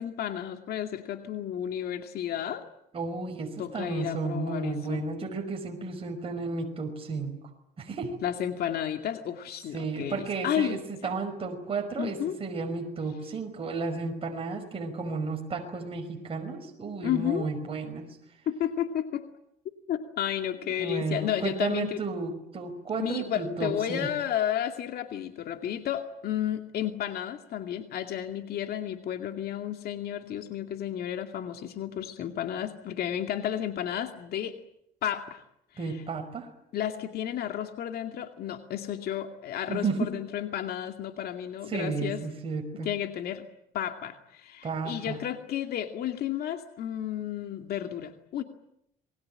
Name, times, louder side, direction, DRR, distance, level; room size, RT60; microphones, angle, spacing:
voice 1, 0.0-2.6 3.6-5.1 8.2-10.8 11.0-11.2 12.0-12.4 17.0-17.5 18.5-19.3 19.9-22.0 23.0-34.6 35.0-35.4 35.8-36.0 36.7-42.2 42.8-43.5 43.7-48.4, left 10 dB, 65° left, 5 dB, 2.4 m, -32 dB
voice 2, 2.9-7.4 7.8-8.2 9.7-18.1 20.8-24.1 35.8-36.5 39.7-40.1 41.7-42.9 44.6-45.2, right 4 dB, 35° right, 3 dB, 5.4 m, -33 dB
27.5 x 21.5 x 8.9 m, 0.77 s
cardioid pair, 110°, 17 cm